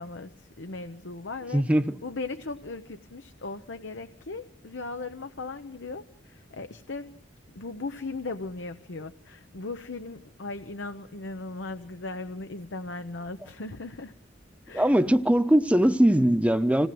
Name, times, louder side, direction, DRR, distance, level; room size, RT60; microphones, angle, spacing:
voice 1, 0.0-1.6 2.0-7.1 7.5-14.1 14.6-15.0, left 3 dB, 85° left, 1.0 m, -38 dB
voice 2, 1.5-1.9 14.7-16.9, right 1 dB, 5° right, 0.9 m, -21 dB
27.0 x 18.5 x 7.8 m
head